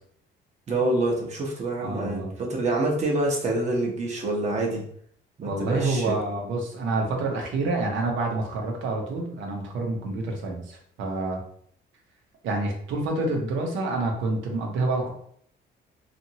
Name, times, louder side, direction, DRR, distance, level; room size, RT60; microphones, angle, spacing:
voice 1, 0.7-4.8 5.4-6.2, right 2 dB, 35° right, -1 dB, 0.8 m, -26 dB
voice 2, 1.8-2.3 5.4-11.4 12.4-15.1, right 2 dB, 90° right, 1 dB, 0.8 m, -28 dB
2.9 x 2.5 x 2.8 m, 0.63 s
cardioid pair, 140°, 19 cm